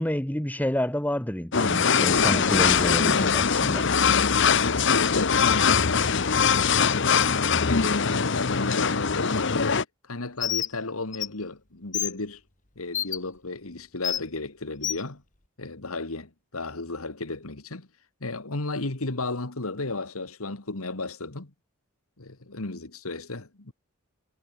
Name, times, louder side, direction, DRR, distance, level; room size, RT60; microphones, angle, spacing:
voice 1, 0.0-3.8, left 1 dB, 5° left, 1.0 m, -29 dB
sound 1, 1.5-9.8, left 6 dB, 55° left, 0.9 m, -22 dB
voice 2, 4.1-6.2 6.6-12.4 12.8-15.2 15.6-17.9 18.2-21.5 22.2-23.7, left 3 dB, 75° left, 1.9 m, -34 dB
Bird, 10.4-10.7 11.1-11.3 11.9-12.1 12.9-13.2 14.0-14.2 14.8-15.0, left 10 dB, 35° left, 2.8 m, -28 dB
head